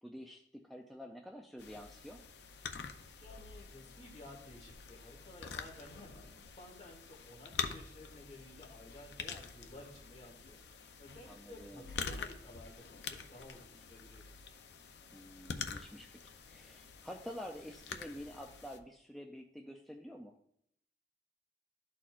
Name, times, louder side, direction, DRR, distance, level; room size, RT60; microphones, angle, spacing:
voice 1, 0.0-2.2 11.3-11.9 15.1-16.1 16.5-20.4, equal, ahead, 1 dB, 0.4 m, -48 dB
sound 1, 1.6-18.8, left 6 dB, 75° left, 0.5 m, -46 dB
voice 2, 3.2-10.6 10.8-14.3, left 1 dB, 35° left, -3 dB, 2.1 m, -54 dB
12.0 x 4.3 x 2.5 m, 0.71 s
head